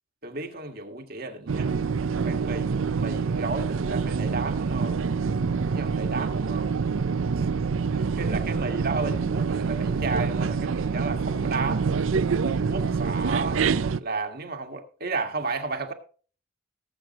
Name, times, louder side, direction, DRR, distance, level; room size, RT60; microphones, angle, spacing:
voice 1, 0.2-1.7 2.1-5.0 5.7-6.7 7.4-7.5 7.9-11.8 12.4-13.6 14.0-15.9, right 3 dB, 45° right, 1.8 m, -33 dB
sound 1, 1.5-14.0, right 5 dB, 75° right, 0.5 m, -26 dB
19.0 x 7.9 x 3.0 m
head